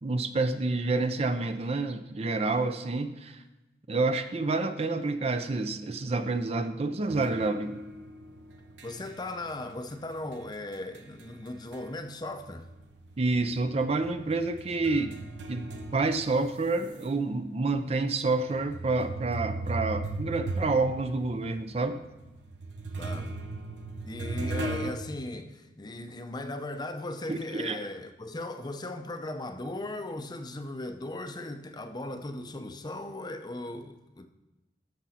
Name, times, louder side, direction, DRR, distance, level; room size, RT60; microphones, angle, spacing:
voice 1, 0.0-3.4 3.9-7.8 13.2-15.1 15.5-22.0 27.3-27.8, right 3 dB, 35° right, 0.5 m, -28 dB
sound 1, 7.1-12.1 12.4-17.0 17.6-17.7 18.5-24.9, right 2 dB, 90° right, 0.9 m, -38 dB
voice 2, 8.8-12.7 23.0-23.3 24.0-34.3, left 2 dB, 25° left, 0.6 m, -37 dB
13.5 x 6.1 x 4.2 m
head